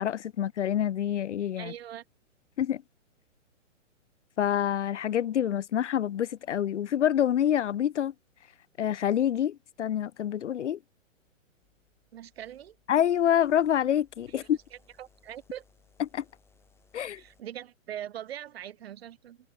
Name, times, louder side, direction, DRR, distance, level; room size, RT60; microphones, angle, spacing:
voice 1, 0.0-1.7 2.6-2.8 4.4-8.1 8.8-10.8 12.9-14.6 16.1-16.2 16.9-17.2, left 10 dB, 60° left, 0.9 m, -27 dB
voice 2, 1.6-2.0 12.1-12.8 14.3-14.5 15.0-15.6 17.2-19.4, right 11 dB, 50° right, 2.7 m, -41 dB
sound 1, 11.6-17.4, left 4 dB, 5° left, 6.5 m, -65 dB
hypercardioid pair, 155°, 39 cm